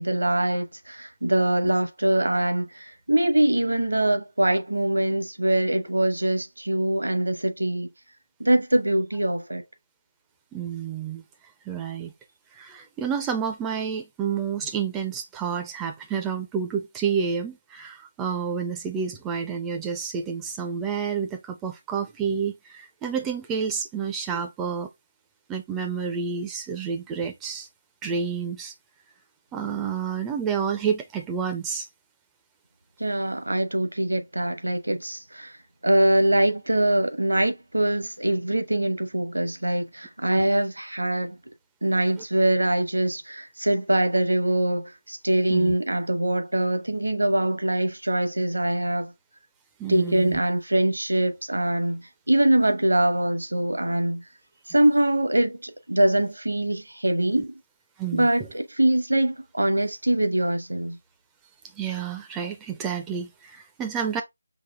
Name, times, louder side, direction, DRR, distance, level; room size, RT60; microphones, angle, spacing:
voice 1, 0.0-7.9 8.4-9.6 33.0-35.6 35.8-41.4 41.8-49.1 49.9-54.2 54.7-57.5 58.1-61.0, right 1 dB, 70° right, 1.0 m, -23 dB
voice 2, 10.5-11.2 11.7-12.1 12.5-24.9 25.5-27.7 28.0-28.7 29.5-31.9 40.4-40.5 45.5-45.7 49.8-50.4 58.0-58.3 61.7-64.2, right 6 dB, 10° right, 0.4 m, -29 dB
5.2 x 3.0 x 3.3 m
figure-of-eight pair, 160°, 0 cm